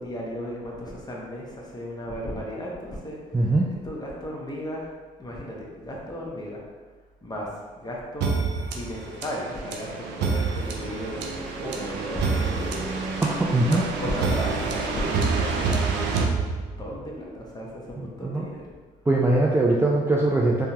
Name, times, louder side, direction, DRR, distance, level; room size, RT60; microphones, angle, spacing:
voice 1, 0.0-3.5 3.8-4.9 5.2-6.6 7.2-8.4 8.7-13.2 13.6-16.5 16.8-18.7, equal, 20° left, -3 dB, 0.9 m, -35 dB
voice 2, 3.3-3.7 13.2-13.8 18.0-18.5 19.1-20.7, right 2 dB, 15° right, -3 dB, 0.4 m, -21 dB
sound 1, 8.2-17.0, right 4 dB, 80° right, 0.4 m, -27 dB
3.5 x 2.2 x 2.8 m, 1.4 s
cardioid pair, 70°, 18 cm